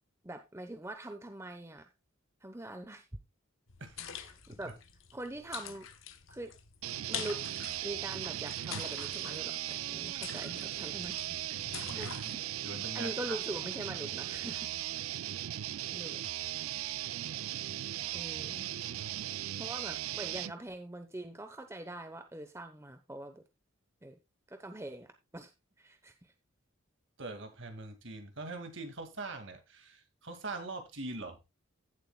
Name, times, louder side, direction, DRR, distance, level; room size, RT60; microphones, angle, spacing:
voice 1, 0.2-1.9 2.4-3.1 4.0-4.8 5.1-5.9 6.3-6.5 7.1-7.4 7.8-11.4 11.9-14.7 14.9-15.1 15.9-16.2 18.1-18.7 19.6-23.4 24.0-24.2 24.5-25.5 25.8-26.1, right 1 dB, 15° right, 0.9 m, -43 dB
sound 1, 3.7-12.4, left 8 dB, 70° left, 1.1 m, -46 dB
sound 2, 6.8-20.5, right 13 dB, 85° right, 0.4 m, -38 dB
voice 2, 11.9-12.3 12.6-13.4 27.2-31.4, right 3 dB, 60° right, 2.2 m, -42 dB
15.5 x 7.5 x 2.3 m
head